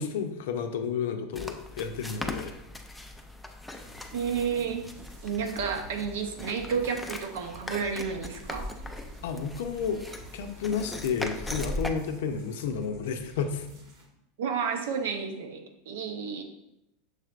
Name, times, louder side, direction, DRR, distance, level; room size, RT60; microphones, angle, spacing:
voice 1, 0.0-2.6 9.2-10.1 10.3-13.7, left 6 dB, 80° left, 7 dB, 0.5 m, -31 dB
sound 1, 1.3-11.9, left 1 dB, 5° left, 0.3 m, -39 dB
sound 2, 3.7-14.1, right 3 dB, 65° right, 1.0 m, -51 dB
voice 2, 4.1-4.8 5.2-8.7 14.4-16.4, right 6 dB, 85° right, 4 dB, 0.7 m, -31 dB
6.4 x 3.2 x 2.4 m, 0.84 s
supercardioid pair, 150°, 0 cm